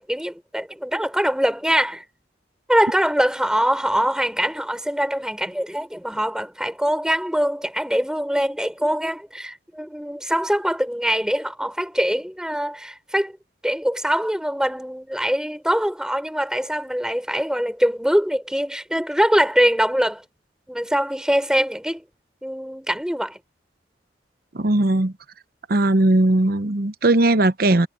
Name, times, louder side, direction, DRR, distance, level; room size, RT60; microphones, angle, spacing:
voice 1, 0.0-2.0 2.7-13.4 13.6-20.2 20.7-22.0 22.4-23.4, equal, 5° right, 5.9 m, -23 dB
voice 2, 24.5-25.1 25.7-27.9, right 2 dB, 55° right, 0.9 m, -18 dB
head